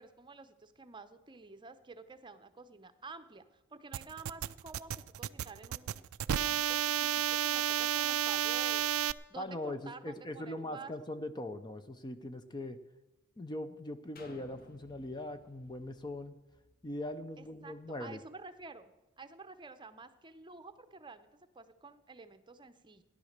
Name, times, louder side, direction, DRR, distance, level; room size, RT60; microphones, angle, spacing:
voice 1, 0.0-8.8 9.3-10.9 17.4-18.9 19.2-21.3 21.5-23.0, right 4 dB, 20° right, 10 dB, 0.7 m, -50 dB
sound 1, 3.9-9.1, right 11 dB, 65° right, 0.4 m, -32 dB
voice 2, 9.4-12.8 13.4-16.4 16.8-18.2, left 1 dB, 20° left, 10 dB, 0.6 m, -41 dB
sound 2, 14.2-17.9 18.5-18.6, left 2 dB, 45° left, 1.1 m, -60 dB
15.0 x 10.5 x 6.6 m, 1.1 s
head